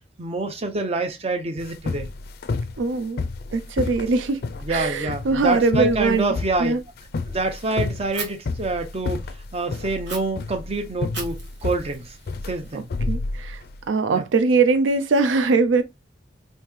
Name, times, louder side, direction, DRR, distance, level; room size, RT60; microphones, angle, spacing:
voice 1, 0.2-2.1 4.6-6.7 7.3-12.1 12.5-12.9 14.1-14.3, right 2 dB, 35° right, 0.7 m, -27 dB
sound 1, 1.6-13.8, left 3 dB, 55° left, 0.4 m, -30 dB
voice 2, 2.8-3.2 3.5-4.4 4.7-6.3 6.6-6.8 12.7-13.6 13.9-15.8, right 4 dB, 85° right, 0.4 m, -21 dB
Fire, 8.1-8.3 10.1-10.2 11.1-13.1, right 4 dB, 65° right, 1.2 m, -37 dB
3.1 x 2.7 x 3.5 m
head